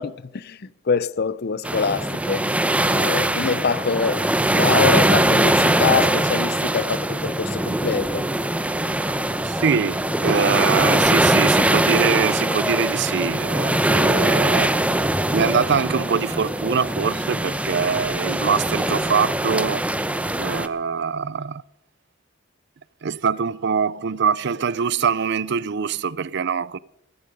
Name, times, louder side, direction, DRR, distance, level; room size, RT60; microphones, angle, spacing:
voice 1, 0.0-2.5 2.8-4.3 4.5-8.3, left 5 dB, 55° left, 0.6 m, -24 dB
sound 1, 1.6-20.7, right 1 dB, 5° right, 0.7 m, -21 dB
voice 2, 9.4-14.7 15.3-19.9 20.4-21.6 23.0-26.8, right 6 dB, 60° right, 0.5 m, -23 dB
15.5 x 14.5 x 5.3 m
head